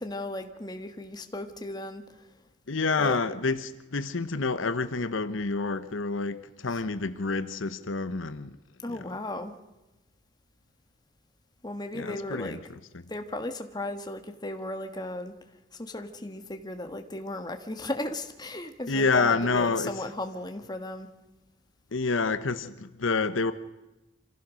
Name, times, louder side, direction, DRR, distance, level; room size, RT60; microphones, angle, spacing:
voice 1, 0.0-2.4 3.0-3.2 6.7-6.8 8.8-9.6 11.6-12.8 13.1-15.3 15.7-21.1, left 1 dB, 20° left, 1.5 m, -36 dB
voice 2, 2.7-8.6 8.9-9.0 11.9-12.6 12.9-13.0 18.9-19.9 21.9-23.5, left 4 dB, 85° left, 1.0 m, -28 dB
26.0 x 15.5 x 6.4 m
head